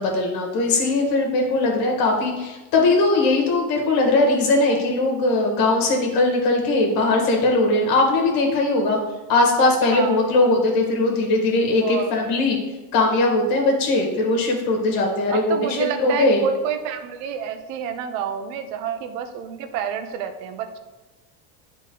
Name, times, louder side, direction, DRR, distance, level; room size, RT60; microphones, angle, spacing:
voice 1, 0.0-9.0 9.3-12.6 12.9-16.4, left 2 dB, 55° left, 1 dB, 1.9 m, -20 dB
voice 2, 9.9-10.5 11.8-12.2 15.3-20.8, right 7 dB, 85° right, 8 dB, 0.9 m, -29 dB
10.0 x 4.0 x 3.9 m, 1.1 s
cardioid pair, 145°, 40 cm